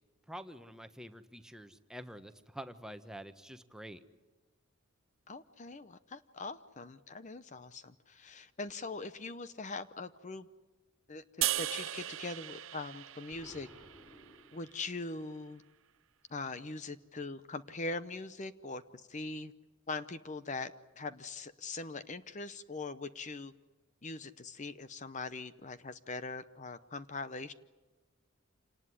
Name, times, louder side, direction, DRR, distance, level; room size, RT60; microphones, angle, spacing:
voice 1, 0.3-4.0, equal, 5° right, 9 dB, 1.2 m, -47 dB
voice 2, 5.3-10.5 11.1-13.7 14.5-15.6 16.3-19.5 19.9-20.7 21.0-23.5 24.0-27.5, left 3 dB, 35° left, 13 dB, 0.8 m, -42 dB
sound 1, 11.4-14.7, right 14 dB, 70° right, 0.8 m, -37 dB
Explosion, 13.3-15.1, left 1 dB, 15° left, 6.1 m, -57 dB
28.0 x 19.0 x 9.9 m, 1.2 s
head